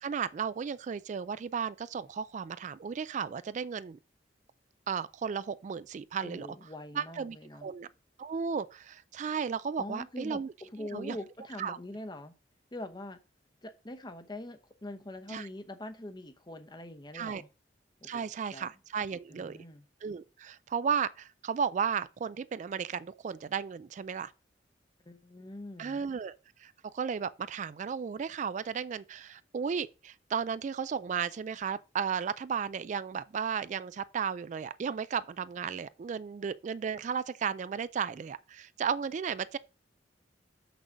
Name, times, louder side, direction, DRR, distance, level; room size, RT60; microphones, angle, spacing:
voice 1, 0.0-4.0 4.9-6.5 6.9-7.9 8.2-10.5 10.8-11.2 11.6-11.8 15.3-15.5 17.1-17.4 18.0-19.6 20.0-24.3 25.8-26.3 26.6-39.6, right 6 dB, 40° right, 0.3 m, -34 dB
voice 2, 6.2-7.7 9.8-12.3 12.7-13.2 13.6-17.5 18.0-18.7 19.3-19.8 25.1-26.0, left 1 dB, 25° left, 0.8 m, -43 dB
6.5 x 6.1 x 5.0 m
head